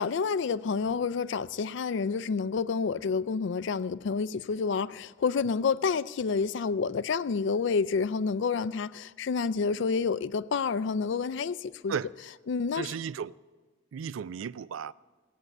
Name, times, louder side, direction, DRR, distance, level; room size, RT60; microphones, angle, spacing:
voice 1, 0.0-11.9 12.5-13.0, left 5 dB, 65° left, 0.4 m, -29 dB
voice 2, 12.7-13.3 13.9-14.9, right 7 dB, 80° right, 0.4 m, -34 dB
16.5 x 9.3 x 7.9 m
head